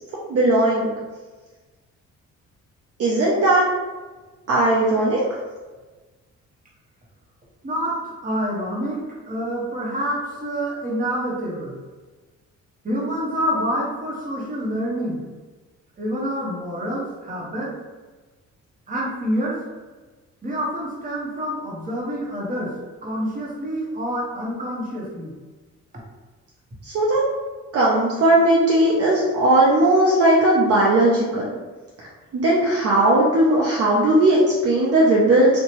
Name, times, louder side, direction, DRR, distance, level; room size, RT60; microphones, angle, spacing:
voice 1, 0.3-0.9 3.0-3.7 4.5-5.2 26.8-27.2 27.7-31.5 32.0-32.1 32.3-35.5, right 1 dB, 50° right, -4 dB, 0.6 m, -17 dB
voice 2, 7.6-11.8 12.8-15.2 16.0-17.8 18.9-19.6 20.4-22.8 23.0-25.3, equal, 30° right, -4 dB, 0.9 m, -27 dB
2.7 x 2.2 x 2.9 m, 1.3 s
cardioid pair, 90°, 30 cm